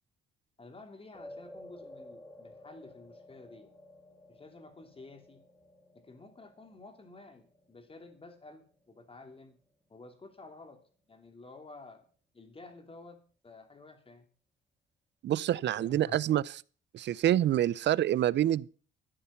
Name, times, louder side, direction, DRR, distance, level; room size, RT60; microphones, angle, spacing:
voice 1, 0.6-3.7 4.3-5.4 5.9-9.6 9.9-10.8 11.1-12.0 12.3-14.2 15.8-16.2, left 3 dB, 30° left, 3.2 m, -51 dB
sound 1, 1.1-9.6, left 1 dB, 5° left, 2.5 m, -53 dB
voice 2, 15.2-16.6 16.9-18.7, right 12 dB, 65° right, 0.6 m, -27 dB
14.0 x 10.0 x 5.7 m
cardioid pair, 90°, 20 cm